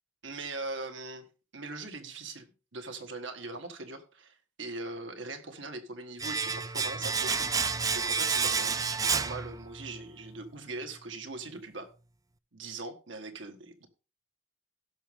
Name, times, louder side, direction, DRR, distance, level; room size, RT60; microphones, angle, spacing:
voice 1, 0.2-1.3 1.5-11.9 12.5-13.9, right 3 dB, 80° right, 1.6 m, -41 dB
Domestic sounds home sounds, 6.2-10.0 10.3-10.4, right 5 dB, 20° right, 0.4 m, -30 dB
16.5 x 6.3 x 3.5 m
head